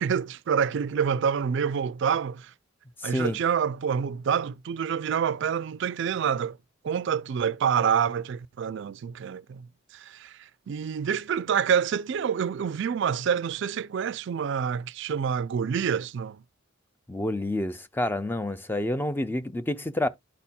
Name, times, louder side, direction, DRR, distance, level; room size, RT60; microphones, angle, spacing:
voice 1, 0.0-2.5 3.0-6.6 6.8-9.7 9.9-16.4, right 7 dB, 60° right, 0.3 m, -27 dB
voice 2, 3.0-3.4 17.1-20.1, left 1 dB, 10° left, 0.4 m, -28 dB
12.5 x 4.2 x 2.2 m
head